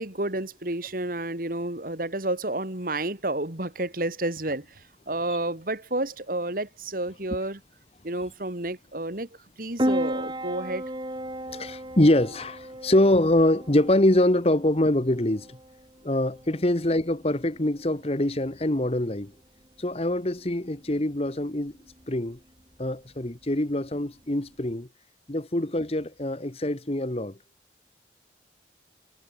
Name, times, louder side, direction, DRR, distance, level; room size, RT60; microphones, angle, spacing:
voice 1, 0.0-4.7 5.1-7.6 8.0-9.3 9.6-10.9, right 2 dB, 50° right, 2.9 m, -30 dB
Piano, 9.8-24.8, equal, 25° right, 7.9 m, -37 dB
voice 2, 11.5-15.6 16.0-19.3 19.8-21.7 22.1-22.4 22.8-24.9 25.3-27.3, left 1 dB, 35° left, 1.3 m, -24 dB
head